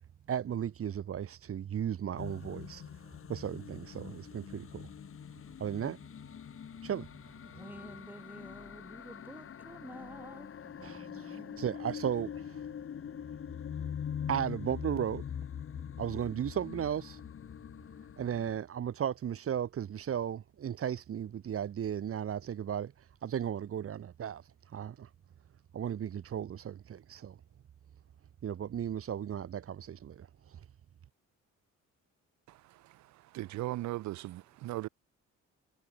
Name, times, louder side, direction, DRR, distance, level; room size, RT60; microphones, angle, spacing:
voice 1, 0.3-2.8 3.3-4.9 5.6-6.0 6.8-7.1 10.8-12.6 14.3-15.2 16.0-17.2 18.2-22.9 23.2-24.4 24.7-25.1 25.7-27.4 28.4-30.6, right 9 dB, 50° right, 1.0 m, -35 dB
sound 1, 2.2-18.6, left 8 dB, 45° left, 1.3 m, -43 dB
voice 2, 7.4-11.8, right 1 dB, 5° right, 1.3 m, -50 dB
voice 3, 33.3-34.9, right 16 dB, 65° right, 0.5 m, -37 dB
cardioid pair, 90°, 30 cm